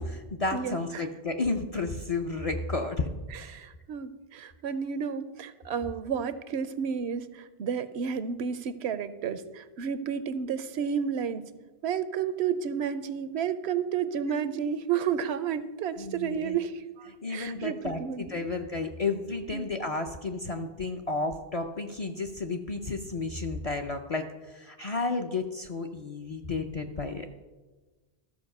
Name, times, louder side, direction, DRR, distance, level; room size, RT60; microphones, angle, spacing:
voice 1, 0.0-3.1 3.4-3.5 16.0-16.6 17.2-27.3, left 3 dB, 45° left, 3 dB, 0.5 m, -32 dB
voice 2, 0.5-1.1 3.3-11.4 11.8-18.5 19.5-19.7, right 7 dB, 85° right, 13 dB, 0.9 m, -31 dB
13.5 x 4.8 x 6.5 m, 1.2 s
omnidirectional pair, 1.1 m